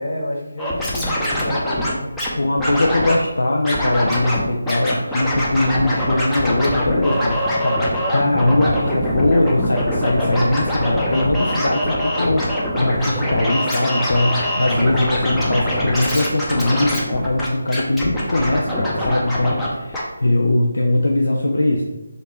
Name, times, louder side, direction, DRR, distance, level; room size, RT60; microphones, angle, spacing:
voice 1, 0.0-2.1, left 1 dB, 50° left, -3 dB, 1.1 m, -29 dB
Scratching (performance technique), 0.6-2.3 2.6-3.2 3.6-4.4 4.7-19.7 19.9-20.0, equal, 5° left, 0.6 m, -23 dB
voice 2, 2.4-21.8, left 1 dB, 70° left, 0 dB, 0.4 m, -20 dB
3.4 x 2.5 x 4.2 m, 1.1 s
figure-of-eight pair, 155°, 0 cm